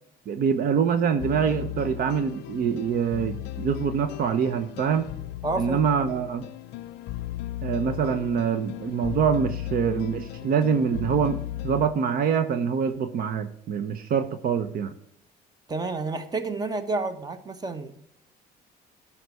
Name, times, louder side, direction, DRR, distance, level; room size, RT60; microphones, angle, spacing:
voice 1, 0.3-5.1 5.6-6.4 7.6-14.9, right 7 dB, 60° right, 10 dB, 0.8 m, -25 dB
sound 1, 1.2-11.9, left 14 dB, 75° left, 0.5 m, -36 dB
voice 2, 5.4-5.8 15.7-17.9, right 3 dB, 25° right, 10 dB, 1.2 m, -29 dB
12.5 x 5.8 x 4.8 m, 0.74 s
cardioid pair, 110°, 17 cm